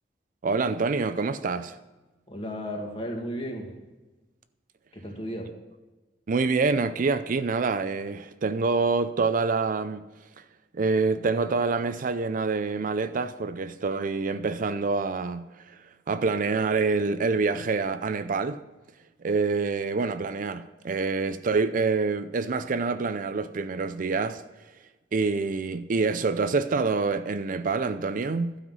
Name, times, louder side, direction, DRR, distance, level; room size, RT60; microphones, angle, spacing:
voice 1, 0.4-1.8 6.3-10.0 10.7-18.6 19.2-24.4 25.1-28.6, right 4 dB, 50° right, 0.5 m, -26 dB
voice 2, 2.3-3.7 4.9-5.5, equal, 30° left, 2.0 m, -34 dB
12.0 x 5.7 x 7.9 m
head